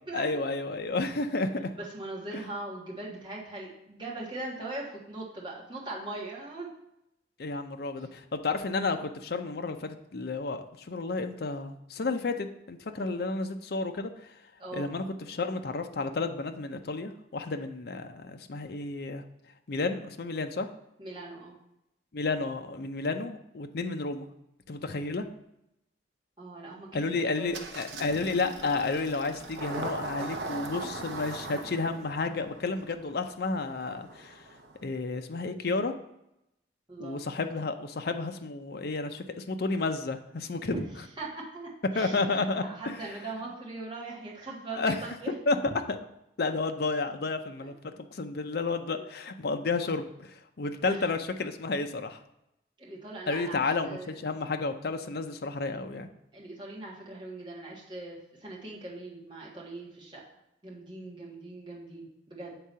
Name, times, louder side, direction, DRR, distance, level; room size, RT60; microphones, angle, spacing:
voice 1, 0.1-1.7 2.3-2.4 7.4-14.3 14.7-19.2 19.7-20.7 22.1-24.3 24.7-25.2 26.9-34.4 34.8-35.9 37.0-40.8 41.9-43.1 44.8-45.0 45.5-45.6 45.9-46.0 46.4-52.2 53.3-56.1, left 3 dB, 60° left, 7 dB, 0.5 m, -31 dB
voice 2, 1.8-6.7 13.0-13.2 14.6-14.9 21.0-21.6 26.4-27.7 36.9-37.2 40.6-40.8 41.2-45.3 47.6-47.7 49.0-49.1 50.9-51.1 52.8-54.2 56.3-60.2 60.6-62.6, right 2 dB, 25° right, -5 dB, 1.8 m, -40 dB
Engine starting, 27.5-34.8, right 2 dB, 75° right, 0.7 m, -40 dB
7.7 x 3.7 x 5.5 m, 0.84 s
head